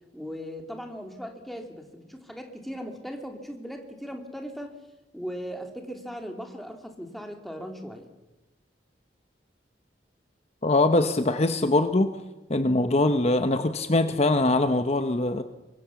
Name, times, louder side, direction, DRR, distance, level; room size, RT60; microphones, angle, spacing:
voice 1, 0.1-4.7 5.1-8.1, equal, ahead, 3 dB, 2.6 m, -38 dB
voice 2, 10.6-12.1 12.5-15.4, left 2 dB, 35° left, 8 dB, 1.0 m, -22 dB
24.0 x 23.0 x 7.1 m, 1.1 s
head